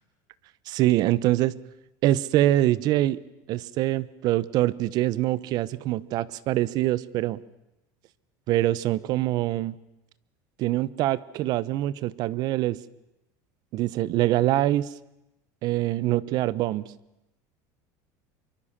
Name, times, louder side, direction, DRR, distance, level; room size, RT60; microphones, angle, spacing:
voice 1, 0.7-1.5 2.0-3.2 3.5-7.4 8.5-9.8 10.6-12.8 13.7-14.9 15.6-16.8, right 15 dB, 50° right, 20 dB, 0.9 m, -24 dB
25.0 x 23.5 x 7.5 m, 0.91 s
cardioid pair, 150°, 9 cm